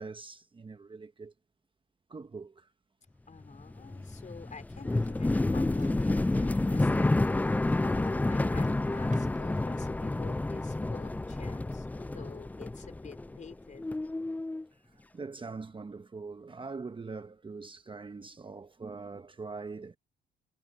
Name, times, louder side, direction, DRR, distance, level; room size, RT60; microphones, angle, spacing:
voice 1, 0.0-1.3 2.1-2.7 14.9-20.0, right 4 dB, 25° right, 1.1 m, -43 dB
voice 2, 3.3-7.1 7.8-13.9, left 5 dB, 40° left, 4.5 m, -49 dB
sound 1, 3.4-13.5 13.8-14.6, left 2 dB, 10° left, 0.4 m, -29 dB
sound 2, 4.9-10.3, right 5 dB, 40° right, 5.1 m, -60 dB
cardioid pair, 90°, 20 cm